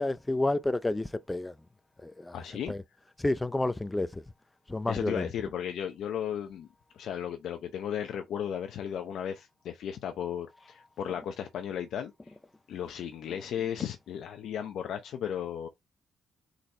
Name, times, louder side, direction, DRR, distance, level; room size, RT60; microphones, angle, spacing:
voice 1, 0.0-1.5 2.0-2.3 2.7-2.8 3.2-4.2 4.7-5.2, left 2 dB, 15° left, 0.5 m, -30 dB
voice 2, 2.3-2.7 4.9-6.7 6.9-12.1 12.7-15.7, left 9 dB, 75° left, 0.6 m, -35 dB
4.1 x 4.0 x 3.2 m
cardioid pair, 90°, 0 cm